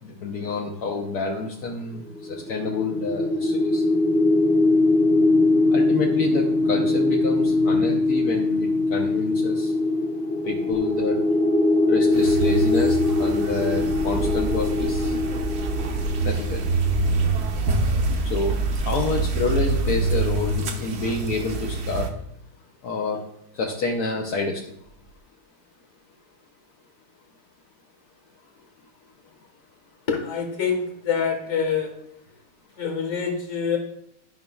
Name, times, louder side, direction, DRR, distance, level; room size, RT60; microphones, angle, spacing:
voice 1, 0.0-3.8 5.7-9.7 10.4-11.2 11.9-15.1 16.2-16.7 18.2-18.6 18.8-22.1 22.8-23.2 23.5-24.6, left 4 dB, 65° left, 0 dB, 1.0 m, -28 dB
sound 1, 2.1-17.1, left 2 dB, 10° left, 0.6 m, -22 dB
sound 2, 12.1-22.1, right 3 dB, 65° right, 1.1 m, -27 dB
sound 3, 13.7-20.5, right 2 dB, 90° right, 2.3 m, -28 dB
voice 2, 30.1-31.9 32.8-33.8, left 6 dB, 40° left, 3 dB, 1.4 m, -25 dB
12.0 x 5.2 x 2.3 m, 0.73 s
omnidirectional pair, 2.3 m